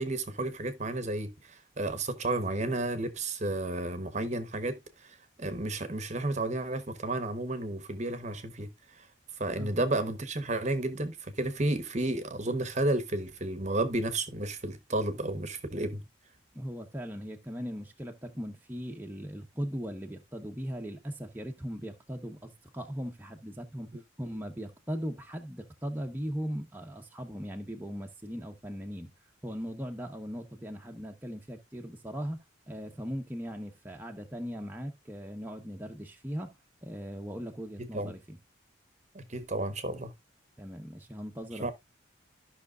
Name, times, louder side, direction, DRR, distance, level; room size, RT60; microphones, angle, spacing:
voice 1, 0.0-8.7 9.0-9.1 9.4-16.0 37.9-38.1 39.1-40.1 41.6-41.7, right 2 dB, 35° right, 1.0 m, -32 dB
voice 2, 16.5-29.1 29.4-36.5 36.8-38.4 40.6-41.7, equal, 10° right, 0.9 m, -39 dB
13.5 x 5.8 x 2.4 m
head